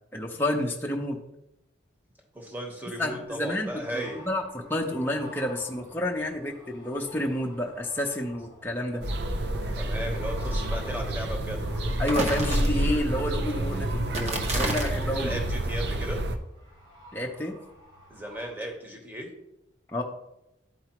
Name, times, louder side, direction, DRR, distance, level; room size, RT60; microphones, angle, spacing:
voice 1, 0.1-1.2 3.0-9.0 12.0-15.4 17.1-17.6 19.9-20.0, left 1 dB, 10° left, -1 dB, 0.6 m, -30 dB
voice 2, 2.3-4.2 9.7-12.0 15.1-16.2 18.1-19.3, equal, 10° right, 1 dB, 1.1 m, -36 dB
sound 1, 3.1-18.5, left 1 dB, 85° right, 2.6 m, -50 dB
sound 2, 9.0-16.4, right 1 dB, 60° right, 0.6 m, -29 dB
sound 3, 12.0-13.1 14.1-15.1, right 2 dB, 35° right, 1.0 m, -31 dB
11.5 x 4.6 x 3.0 m, 0.86 s
head